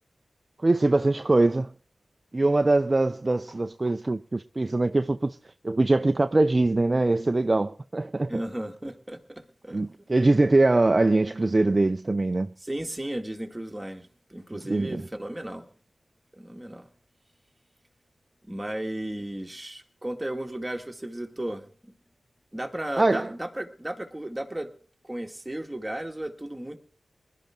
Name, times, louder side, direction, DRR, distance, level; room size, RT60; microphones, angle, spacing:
voice 1, 0.6-1.7 2.3-5.4 5.6-8.3 9.7-12.5 14.7-15.0 23.0-23.3, right 2 dB, 35° right, 0.5 m, -22 dB
voice 2, 8.3-9.8 12.6-15.7 16.3-16.9 18.4-21.7 22.5-24.7 25.0-26.8, right 1 dB, 15° right, 2.1 m, -34 dB
20.0 x 12.0 x 3.8 m
cardioid pair, 45°, 0 cm